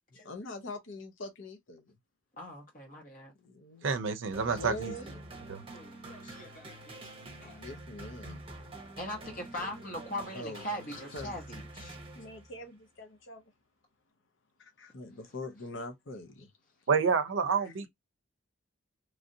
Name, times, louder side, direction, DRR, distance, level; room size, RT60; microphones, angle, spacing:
voice 1, 0.1-1.9 3.4-3.9 4.6-5.2 7.4-8.7 10.3-11.7 12.1-13.4 14.6-16.5 17.6-17.7, left 2 dB, 65° left, 0.7 m, -44 dB
voice 2, 2.3-3.3 5.7-7.0 7.4-7.6 9.0-12.0, equal, 40° left, 1.1 m, -41 dB
voice 3, 3.8-4.9 5.5-5.6 16.9-17.9, right 5 dB, 70° right, 0.5 m, -28 dB
sound 1, 4.3-12.6, right 2 dB, 25° right, 0.8 m, -47 dB
3.1 x 2.6 x 2.6 m
head